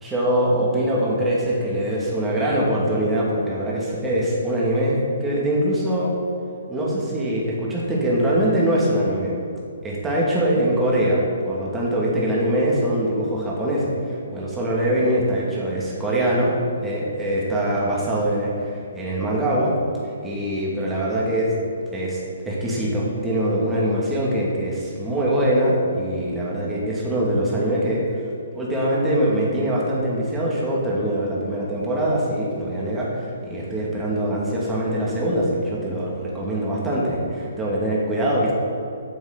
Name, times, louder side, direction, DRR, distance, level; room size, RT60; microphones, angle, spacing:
voice 1, 0.0-6.1 6.7-9.4 9.8-16.5 16.8-19.8 20.0-21.5 21.9-22.2 22.4-28.0 28.5-38.5, right 1 dB, 10° right, -5 dB, 2.6 m, -23 dB
9.6 x 7.3 x 6.9 m, 2.5 s
hypercardioid pair, 145°, 0 cm